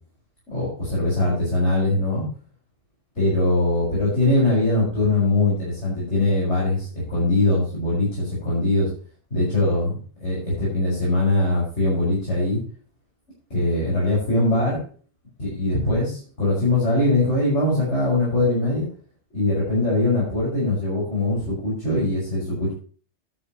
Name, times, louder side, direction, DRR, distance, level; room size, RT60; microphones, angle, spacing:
voice 1, 0.5-2.2 3.2-8.9 9.3-12.6 13.5-14.8 15.4-18.9 19.3-22.7, left 2 dB, 70° left, -7 dB, 6.3 m, -22 dB
11.0 x 10.5 x 3.1 m, 0.41 s
omnidirectional pair, 1.2 m